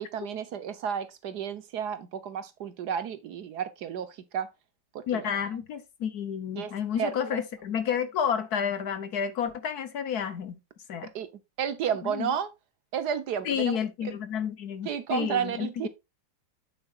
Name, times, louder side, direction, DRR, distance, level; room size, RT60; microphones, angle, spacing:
voice 1, 0.0-4.5 4.9-5.3 6.6-6.7 7.0-7.4 11.1-11.3 11.6-12.5 12.9-14.1 14.8-15.9, right 8 dB, 65° right, 1.4 m, -32 dB
voice 2, 5.1-10.6 10.9-11.1 12.0-12.3 13.4-15.9, left 8 dB, 60° left, 1.3 m, -30 dB
8.8 x 7.6 x 2.4 m
omnidirectional pair, 2.0 m